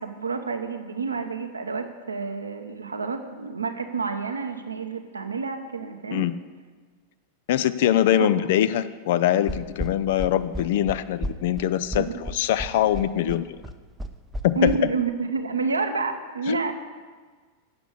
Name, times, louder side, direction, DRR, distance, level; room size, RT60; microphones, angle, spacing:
voice 1, 0.0-6.3 8.2-8.3 11.9-12.2 13.2-13.4 14.6-16.7, right 4 dB, 75° right, 6 dB, 0.8 m, -29 dB
voice 2, 7.5-13.5 14.4-14.7 16.5-16.6, left 11 dB, 55° left, 14 dB, 0.4 m, -23 dB
sound 1, 9.5-14.8, equal, 10° right, 0.6 m, -32 dB
8.1 x 7.0 x 8.1 m, 1.5 s
figure-of-eight pair, 90°, 0 cm